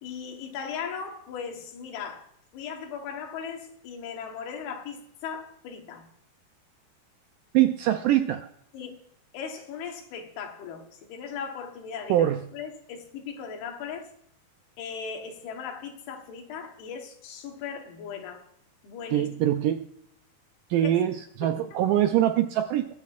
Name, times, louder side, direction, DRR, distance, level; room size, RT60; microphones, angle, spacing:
voice 1, 0.0-6.1 8.7-9.0 9.3-14.1 14.8-18.4 18.8-19.3 20.8-21.0 21.4-21.8, left 6 dB, 90° left, 4 dB, 3.4 m, -38 dB
voice 2, 7.5-8.5 12.1-12.4 19.1-19.9 20.7-22.9, right 12 dB, 80° right, 7 dB, 1.9 m, -23 dB
22.0 x 8.3 x 2.5 m, 0.71 s
omnidirectional pair, 4.4 m